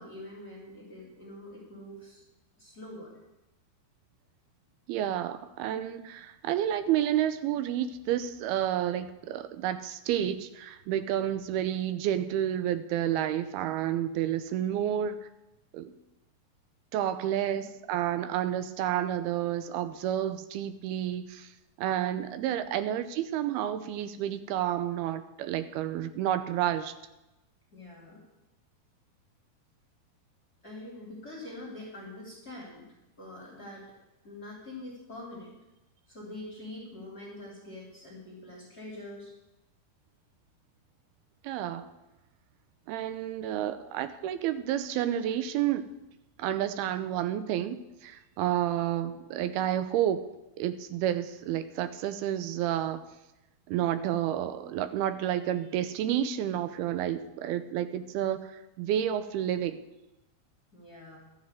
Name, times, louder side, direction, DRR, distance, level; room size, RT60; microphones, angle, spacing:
voice 1, 0.0-2.2 2.6-3.1 11.3-11.4 17.2-17.6 22.1-22.2 27.7-28.2 30.6-32.9 33.2-33.9 34.2-35.5 36.1-39.3 60.7-61.2, left 1 dB, 25° left, -3 dB, 2.9 m, -44 dB
voice 2, 4.9-15.3 15.7-15.9 16.9-21.5 21.8-26.9 41.4-41.9 42.9-45.9 46.4-50.2 50.6-53.0 53.7-59.8, right 11 dB, 80° right, 11 dB, 2.6 m, -30 dB
13.0 x 7.5 x 7.9 m, 0.96 s
omnidirectional pair, 4.6 m